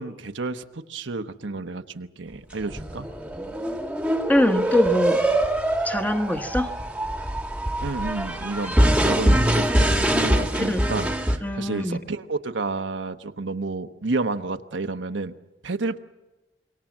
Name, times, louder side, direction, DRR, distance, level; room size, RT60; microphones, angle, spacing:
voice 1, 0.0-3.1 7.8-15.3 15.6-16.0, right 3 dB, 80° right, 1.1 m, -30 dB
sound 1, 2.6-11.4, right 1 dB, 5° right, 1.5 m, -23 dB
voice 2, 4.3-5.2 5.8-6.7 10.6-10.9 11.4-12.0, left 1 dB, 10° left, 1.4 m, -23 dB
26.0 x 23.0 x 7.4 m
head